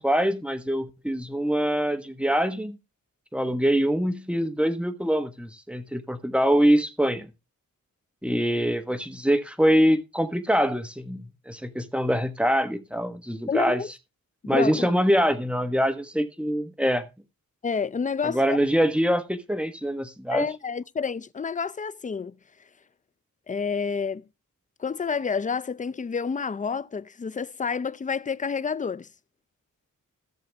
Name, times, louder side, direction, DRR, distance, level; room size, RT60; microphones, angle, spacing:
voice 1, 0.0-2.8 3.3-7.3 8.2-13.8 14.5-17.1 18.2-20.5, equal, 5° right, 1.3 m, -24 dB
voice 2, 13.5-13.9 14.5-14.9 17.6-18.6 20.3-22.4 23.5-24.2 24.8-29.1, left 5 dB, 25° left, 0.4 m, -29 dB
15.5 x 6.9 x 3.5 m
cardioid pair, 75°, 34 cm